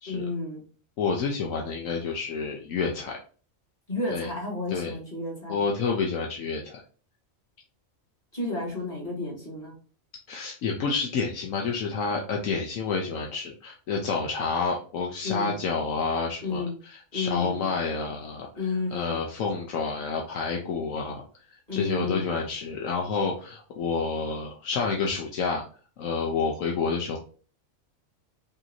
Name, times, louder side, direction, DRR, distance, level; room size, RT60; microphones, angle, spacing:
voice 1, 0.1-0.6 3.9-5.6 8.3-9.7 15.2-15.6 16.4-16.8 17.1-17.8 18.6-19.2 21.7-22.3, left 3 dB, 30° left, -3 dB, 2.4 m, -31 dB
voice 2, 1.0-3.2 4.1-4.3 4.7-4.9 5.5-6.8 10.3-18.6 18.9-21.2 21.7-25.6 26.0-27.2, left 4 dB, 75° left, 0 dB, 1.1 m, -29 dB
5.4 x 2.8 x 2.6 m, 0.39 s
omnidirectional pair, 1.4 m